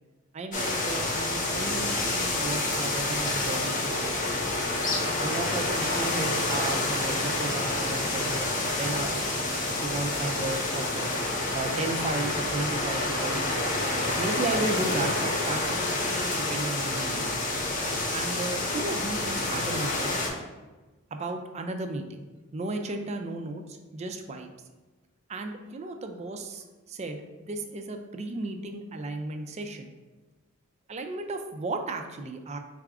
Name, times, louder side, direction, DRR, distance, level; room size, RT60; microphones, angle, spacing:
voice 1, 0.3-4.7 5.2-8.5 8.8-11.1 11.5-13.7 14.2-17.3 18.1-20.2 21.1-22.3 22.5-24.5 25.3-29.9 30.9-32.6, right 2 dB, 30° right, 5 dB, 0.3 m, -34 dB
sound 1, 0.5-20.3, left 2 dB, 40° left, 0.8 m, -28 dB
4.1 x 2.4 x 4.7 m, 1.2 s
head